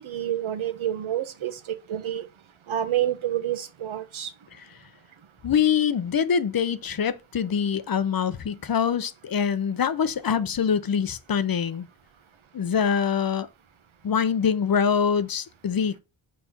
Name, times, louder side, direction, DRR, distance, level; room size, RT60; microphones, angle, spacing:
voice 1, 0.0-2.3 2.7-4.3, right 11 dB, 90° right, 1.1 m, -28 dB
voice 2, 5.4-11.9 12.5-13.5 14.0-16.0, left 7 dB, 50° left, 0.6 m, -24 dB
4.6 x 4.2 x 5.7 m
wide cardioid pair, 85°, 46 cm